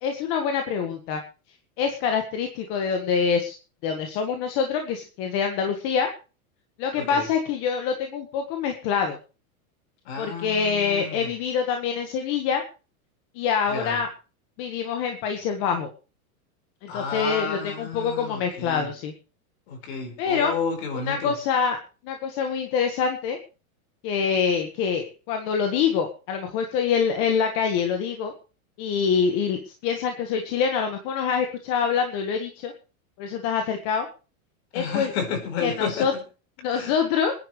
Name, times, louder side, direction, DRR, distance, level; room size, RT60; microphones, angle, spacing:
voice 1, 0.0-1.2 1.8-3.5 3.8-6.1 6.8-9.2 10.2-12.6 13.3-14.1 14.6-15.9 16.8-19.1 20.2-20.5 20.9-21.8 22.0-23.4 24.0-28.3 28.8-32.7 33.2-34.1 34.7-35.1 35.6-36.1 36.6-37.3, left 6 dB, 30° left, 5 dB, 1.5 m, -25 dB
voice 2, 10.0-11.3 13.7-14.0 16.9-18.9 19.7-21.3 34.7-36.1 36.7-36.9, left 5 dB, 45° left, 5 dB, 5.1 m, -31 dB
26.5 x 10.5 x 3.3 m, 0.35 s
supercardioid pair, 175°, 43 cm